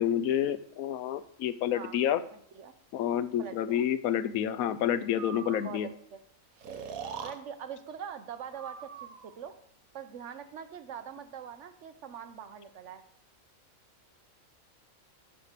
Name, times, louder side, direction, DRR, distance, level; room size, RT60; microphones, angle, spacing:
voice 1, 0.0-2.2 2.9-5.9, left 10 dB, 85° left, 14 dB, 1.0 m, -29 dB
voice 2, 2.3-2.7 3.4-3.9 5.6-6.2 7.2-9.6 9.9-13.0, right 8 dB, 65° right, 10 dB, 1.0 m, -43 dB
Breathing, 5.2-5.8 6.6-7.4 8.5-9.4, right 6 dB, 80° right, 1.3 m, -42 dB
6.8 x 5.7 x 6.6 m, 0.66 s
omnidirectional pair, 1.4 m